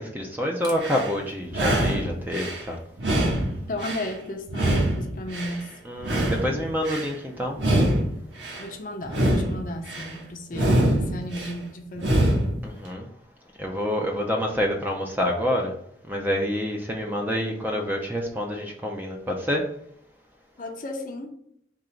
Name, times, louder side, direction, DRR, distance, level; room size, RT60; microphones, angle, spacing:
voice 1, 0.0-2.8 5.9-7.6 12.6-13.1 13.6-15.7 16.1-19.7, equal, 10° right, 0.5 m, -27 dB
sound 1, 0.6-1.1 1.5-2.6 3.0-4.1 4.5-5.6 6.0-7.1 7.5-8.6 9.0-10.1 10.5-11.5 12.0-12.6, right 1 dB, 85° right, 1.1 m, -24 dB
voice 2, 3.7-5.7 8.6-12.3 20.6-21.3, left 1 dB, 45° left, 0.6 m, -34 dB
3.8 x 2.9 x 4.4 m
head